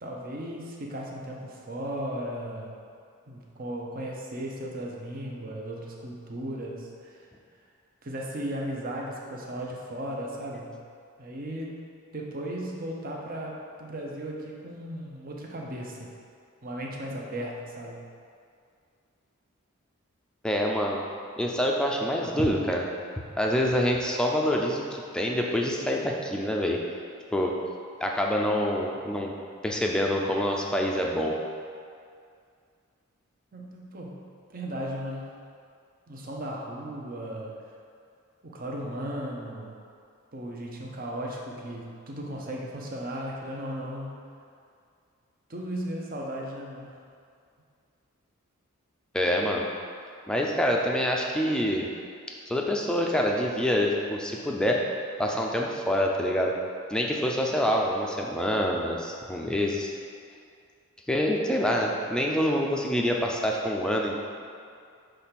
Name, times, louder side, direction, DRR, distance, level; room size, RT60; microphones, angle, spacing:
voice 1, 0.0-2.8 3.3-7.2 8.0-10.8 11.2-11.8 12.1-16.1 16.6-18.1 33.5-35.3 36.1-37.5 38.4-39.8 40.3-44.2 45.5-46.9, right 1 dB, 40° right, -1 dB, 0.8 m, -36 dB
voice 2, 20.4-21.0 21.4-22.9 23.4-26.8 27.3-27.6 28.0-29.3 29.6-31.4 49.1-49.7 50.3-51.9 52.5-54.8 55.2-56.6 56.9-59.9 61.1-64.2, equal, 5° left, -1 dB, 0.5 m, -26 dB
6.2 x 3.4 x 5.8 m, 2.3 s
head